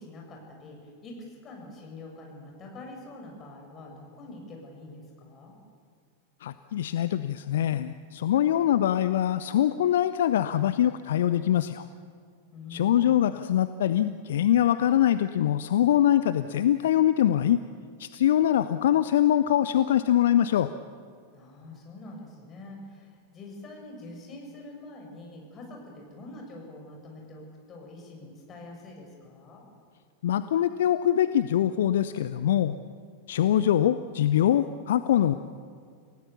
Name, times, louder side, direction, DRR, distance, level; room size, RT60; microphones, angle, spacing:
voice 1, 0.0-5.6 12.5-13.2 21.3-29.6, left 2 dB, 25° left, 0 dB, 7.3 m, -45 dB
voice 2, 6.4-11.9 12.7-17.6 18.0-20.7 30.2-32.7 33.3-35.3, left 11 dB, 60° left, 12 dB, 0.6 m, -23 dB
28.5 x 17.5 x 7.0 m, 2.3 s
figure-of-eight pair, 90°, 0 cm